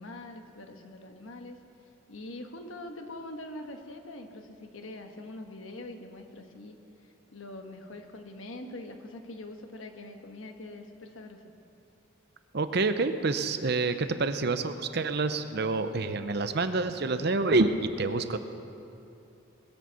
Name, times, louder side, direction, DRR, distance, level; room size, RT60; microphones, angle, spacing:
voice 1, 0.0-1.6 2.1-6.8 7.3-11.4, left 2 dB, 80° left, 5 dB, 1.3 m, -43 dB
voice 2, 12.5-18.4, right 3 dB, 55° right, 10 dB, 0.7 m, -27 dB
20.0 x 7.8 x 6.9 m, 2.8 s
head